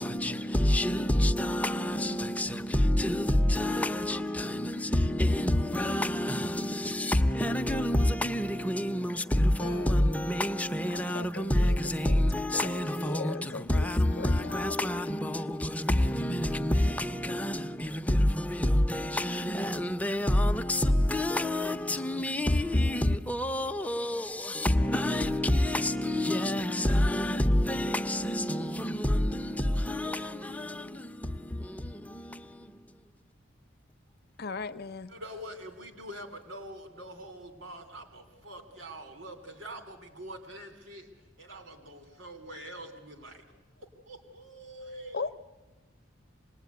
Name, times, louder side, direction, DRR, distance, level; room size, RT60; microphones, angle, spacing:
voice 1, 0.0-33.0, left 1 dB, 10° left, 0.8 m, -28 dB
voice 2, 9.6-10.3 10.9-12.2 12.5-13.9 14.2-14.8 28.2-28.4 34.4-35.1 45.1-45.4, left 4 dB, 55° left, 0.8 m, -39 dB
voice 3, 35.1-43.4 43.8-45.2, right 1 dB, 75° right, 3.3 m, -45 dB
26.5 x 20.0 x 9.6 m
head